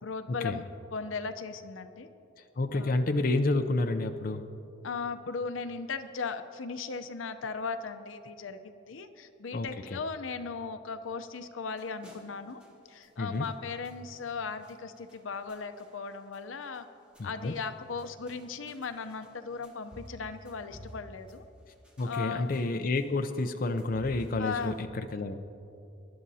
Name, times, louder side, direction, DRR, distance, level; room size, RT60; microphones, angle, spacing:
voice 1, 0.0-2.1 2.7-2.9 4.8-12.6 12.9-16.9 17.2-21.4 22.0-22.4 24.4-24.7, left 5 dB, 90° left, 9 dB, 0.7 m, -37 dB
voice 2, 2.6-4.4 9.5-10.0 13.2-13.4 17.2-17.5 22.0-25.3, left 2 dB, 45° left, 6 dB, 0.5 m, -30 dB
sound 1, 11.7-24.8, equal, 5° right, 2.0 m, -53 dB
23.5 x 11.5 x 2.8 m, 2.7 s
head